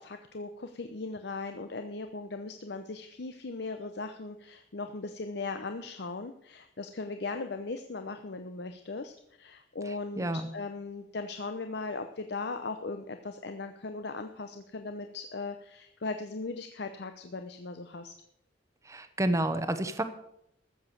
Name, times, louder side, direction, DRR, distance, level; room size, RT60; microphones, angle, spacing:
voice 1, 0.0-9.1 9.4-18.1, left 3 dB, 60° left, 7 dB, 0.8 m, -38 dB
voice 2, 9.9-10.5 18.8-20.0, right 1 dB, 15° right, 9 dB, 0.8 m, -30 dB
14.0 x 7.2 x 6.7 m, 0.77 s
head